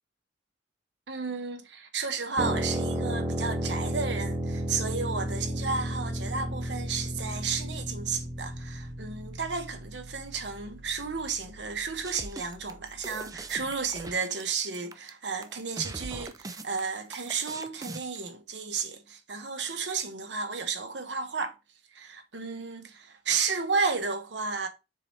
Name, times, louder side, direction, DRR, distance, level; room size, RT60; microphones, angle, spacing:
voice 1, 1.1-21.5 21.9-24.7, right 5 dB, 90° right, 1.2 m, -33 dB
sound 1, 2.4-14.0, right 1 dB, 35° right, 1.3 m, -34 dB
sound 2, 12.0-18.2, right 2 dB, 20° right, 0.6 m, -41 dB
6.9 x 4.7 x 3.2 m
head